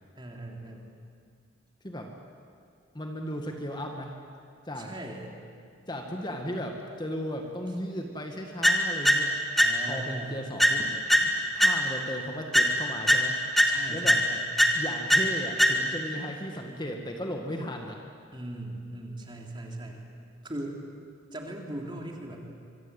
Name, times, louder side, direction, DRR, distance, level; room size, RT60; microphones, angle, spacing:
voice 1, 0.2-0.9 4.8-5.3 9.6-10.3 13.7-14.4 18.3-20.0 20.4-20.8 21.3-22.5, right 1 dB, 25° right, 1 dB, 3.3 m, -39 dB
voice 2, 2.9-4.2 4.7-4.9 5.9-9.4 9.9-11.3 11.5-13.4 13.9-14.2 14.7-18.0, equal, 20° left, 2 dB, 1.8 m, -35 dB
sound 1, 8.6-10.1 10.6-12.1 12.5-16.1, equal, ahead, 1.6 m, -24 dB
24.5 x 24.5 x 8.3 m, 2.3 s
head